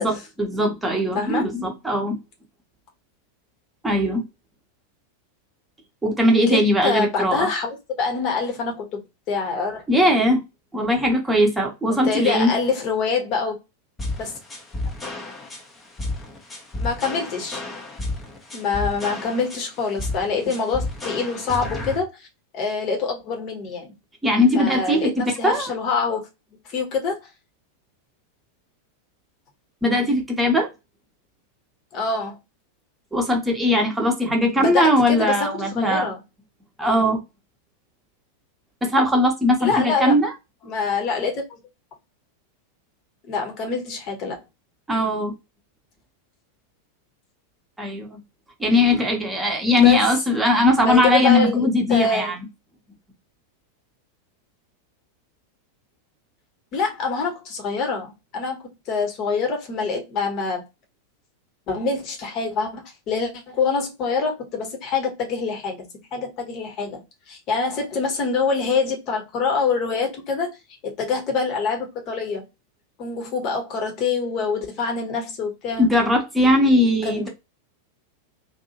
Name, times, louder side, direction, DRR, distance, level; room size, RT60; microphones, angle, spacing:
voice 1, 0.0-2.2 3.8-4.2 6.0-7.5 9.9-10.4 10.7-12.5 24.2-25.7 29.8-30.7 33.1-36.1 36.8-37.2 38.8-40.3 44.9-45.3 47.8-48.2 48.6-52.4 75.8-77.3, left 1 dB, 10° right, 0.9 m, -20 dB
voice 2, 1.1-1.5 6.3-9.0 9.3-9.8 12.0-13.5 14.2-14.3 16.8-17.6 18.5-22.3 22.5-23.9 24.5-26.3 26.7-27.2 31.9-32.4 34.6-36.2 39.6-40.1 40.6-41.6 43.2-44.4 49.8-50.1 50.8-52.3 56.7-60.6 61.7-65.9 66.1-67.0 67.3-70.5 70.8-72.4 73.0-75.9 77.0-77.3, left 4 dB, 40° left, 1.1 m, -25 dB
sound 1, 14.0-22.0, left 2 dB, 15° left, 0.7 m, -32 dB
2.7 x 2.6 x 2.7 m
figure-of-eight pair, 90°, 0 cm